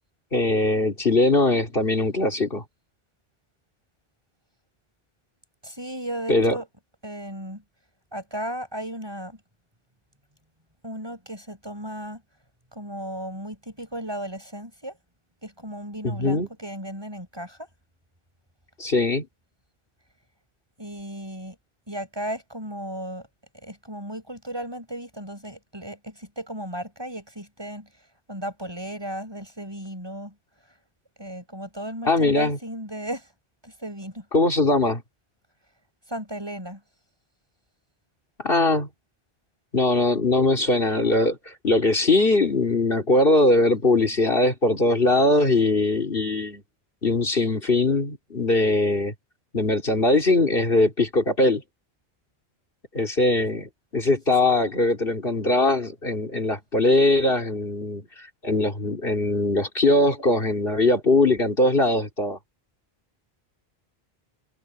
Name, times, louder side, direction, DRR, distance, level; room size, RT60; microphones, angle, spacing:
voice 1, 0.3-2.6 6.3-6.6 16.0-16.5 18.8-19.3 32.1-32.6 34.3-35.0 38.4-38.9 39.7-46.6 47.0-49.1 49.5-51.6 52.9-58.0 58.4-62.4, left 2 dB, 65° left, 3.5 m, -21 dB
voice 2, 5.6-6.7 7.0-7.6 8.1-9.4 10.8-12.2 12.7-15.0 15.4-17.7 20.8-21.6 21.9-23.3 23.5-27.9 28.3-30.3 31.2-33.3 33.6-34.3 36.1-36.8, right 1 dB, 25° right, 8.0 m, -35 dB
omnidirectional pair, 1.0 m